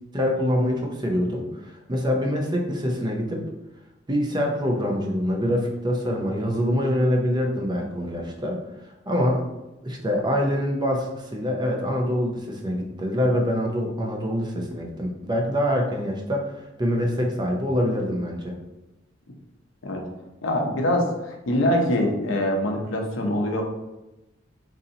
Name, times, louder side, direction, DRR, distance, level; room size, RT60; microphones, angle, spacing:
voice 1, 0.1-3.4 4.1-8.6 9.1-9.4 9.8-16.5 16.8-18.5, equal, 25° right, 0 dB, 0.6 m, -25 dB
voice 2, 20.4-23.6, left 1 dB, 80° left, 1 dB, 0.7 m, -24 dB
4.0 x 2.6 x 2.7 m, 0.98 s
head